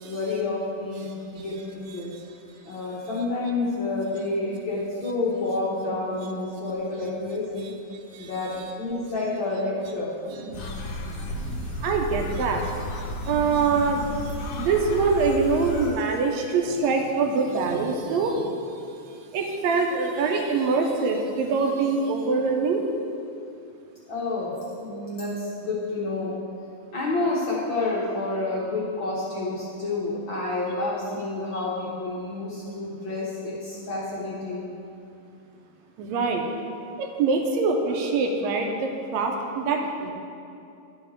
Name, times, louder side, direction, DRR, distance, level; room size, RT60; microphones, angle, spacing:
voice 1, 0.0-2.1 2.7-7.7 8.2-10.1 24.1-26.3 26.9-34.7, left 2 dB, 65° left, -7 dB, 1.2 m, -29 dB
voice 2, 10.3-12.7 13.2-18.6 19.3-22.8 36.0-36.4 37.0-40.1, right 4 dB, 75° right, 2 dB, 1.7 m, -25 dB
sound 1, 10.5-15.9, left 1 dB, 85° left, 2.1 m, -33 dB
12.0 x 5.1 x 3.6 m, 2.6 s
omnidirectional pair, 3.6 m